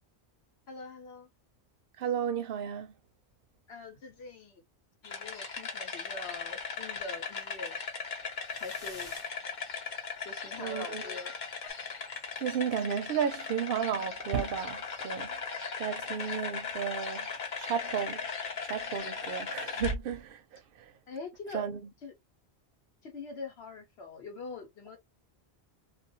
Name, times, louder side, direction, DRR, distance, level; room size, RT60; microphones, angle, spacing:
voice 1, 0.7-1.3 3.7-4.6 5.0-7.8 8.6-9.1 10.2-11.3 21.1-21.7 22.0-22.1 23.0-25.0, left 3 dB, 70° left, 1.2 m, -43 dB
voice 2, 2.0-2.9 10.6-11.1 12.4-15.3 15.8-17.3 17.6-18.2 18.6-20.4 20.8-20.9 21.5-21.8, right 7 dB, 65° right, 0.7 m, -33 dB
sound 1, 5.0-19.9, left 5 dB, 50° left, 0.8 m, -38 dB
sound 2, 6.1-6.7 8.4-9.4 10.7-11.7, left 2 dB, 30° left, 1.0 m, -51 dB
2.4 x 2.3 x 2.6 m
omnidirectional pair, 1.1 m